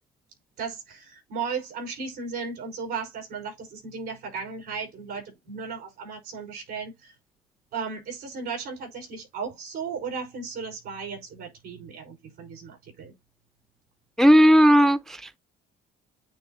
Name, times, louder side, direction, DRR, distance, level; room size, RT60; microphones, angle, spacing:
voice 1, 0.6-7.1 7.7-13.1, right 5 dB, 65° right, 5.5 m, -35 dB
voice 2, 14.2-15.4, equal, ahead, 0.3 m, -16 dB
9.1 x 4.0 x 2.9 m
cardioid pair, 110°, 17 cm